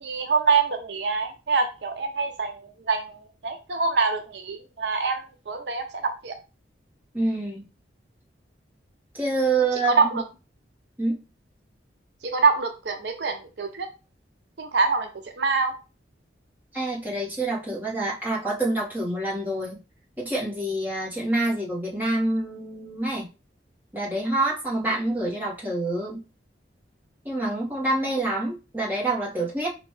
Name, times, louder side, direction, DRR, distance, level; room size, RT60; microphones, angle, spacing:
voice 1, 0.0-6.4 9.7-10.2 12.2-13.9 14.6-15.1 15.4-15.7, right 4 dB, 70° right, 6 dB, 0.6 m, -25 dB
voice 2, 7.1-7.6 9.1-10.0 11.0-11.1 16.7-19.8 20.2-23.3 23.9-26.2 27.2-29.7, right 2 dB, 10° right, -6 dB, 1.9 m, -27 dB
5.2 x 3.0 x 3.3 m, 0.30 s
head